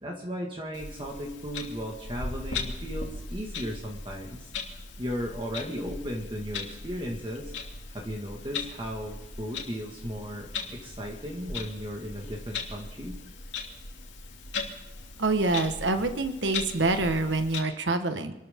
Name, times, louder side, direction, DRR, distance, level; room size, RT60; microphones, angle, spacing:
voice 1, 0.0-4.5 5.0-7.5 7.9-13.2, equal, 25° right, -1 dB, 1.8 m, -36 dB
Clock, 0.7-17.6, left 4 dB, 90° left, 2.9 m, -39 dB
voice 2, 15.2-18.3, right 2 dB, 80° right, 8 dB, 1.4 m, -26 dB
26.0 x 13.5 x 3.7 m, 0.94 s
head